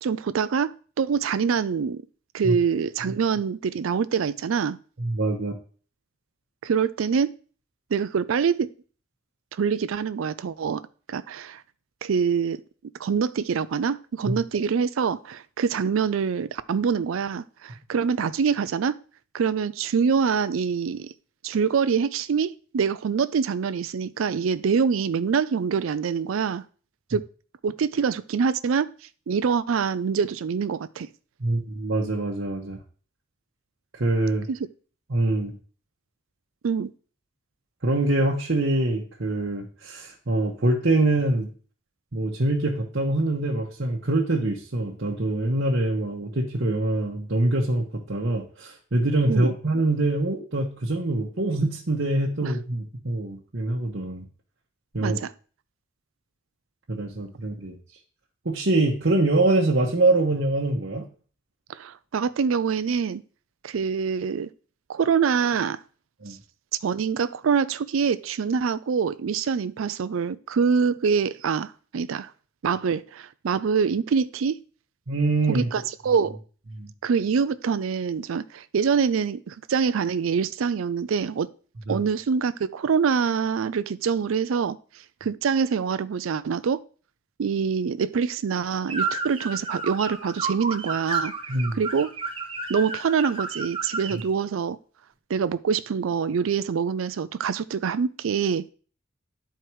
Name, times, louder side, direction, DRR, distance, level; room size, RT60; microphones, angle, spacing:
voice 1, 0.0-2.0 2.3-4.8 6.6-7.3 7.9-8.7 9.5-10.8 11.1-11.6 12.0-12.6 13.0-19.0 19.3-21.1 21.4-26.6 27.1-27.2 27.6-28.9 29.3-31.1 34.5-34.6 36.6-36.9 49.3-49.5 52.4-52.5 55.0-55.3 61.7-63.2 63.6-64.5 64.9-65.8 66.3-66.4 66.8-72.3 72.6-74.6 75.5-76.4 77.0-81.5 81.9-84.8 85.2-86.8 87.4-91.3 91.7-92.1 92.7-94.8 95.3-98.7, right 6 dB, 80° right, 0.4 m, -25 dB
voice 2, 5.0-5.6 14.2-14.4 31.4-32.8 33.9-34.5 35.1-35.5 37.8-41.5 42.1-54.2 54.9-55.2 56.9-57.8 58.4-61.0 66.2-66.3 75.1-75.7 76.8-76.9 81.9-82.0 91.5-91.8, right 2 dB, 60° right, 1.1 m, -24 dB
sound 1, 88.9-94.2, right 4 dB, 25° right, 1.2 m, -31 dB
11.0 x 4.6 x 4.7 m
head